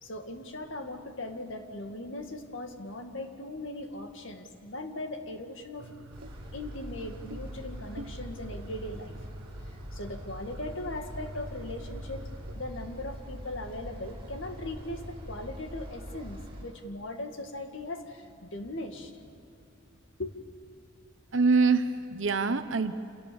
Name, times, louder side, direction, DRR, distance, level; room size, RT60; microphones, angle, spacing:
voice 1, 0.0-5.9 6.5-9.1 9.7-12.3 12.5-19.2 20.2-20.4, left 1 dB, 65° left, 5 dB, 2.2 m, -39 dB
sound 1, 5.8-12.6, right 1 dB, 90° right, 1.2 m, -49 dB
sound 2, 6.1-16.6, equal, 25° right, 6.9 m, -42 dB
voice 2, 21.3-22.9, right 4 dB, 65° right, 9 dB, 0.9 m, -24 dB
29.0 x 28.0 x 7.1 m, 2.4 s
head